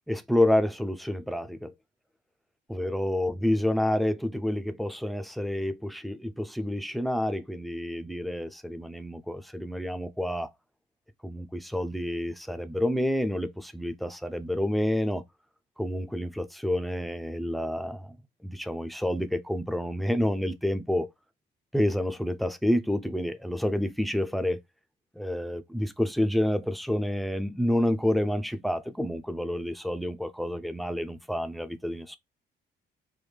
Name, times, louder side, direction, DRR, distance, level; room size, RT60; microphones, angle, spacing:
voice 1, 0.1-1.7 2.7-10.5 11.2-15.2 15.8-18.2 18.4-21.1 21.7-24.6 25.2-32.2, left 1 dB, ahead, 0.4 m, -29 dB
3.4 x 2.1 x 3.2 m
cardioid pair, 90°, 20 cm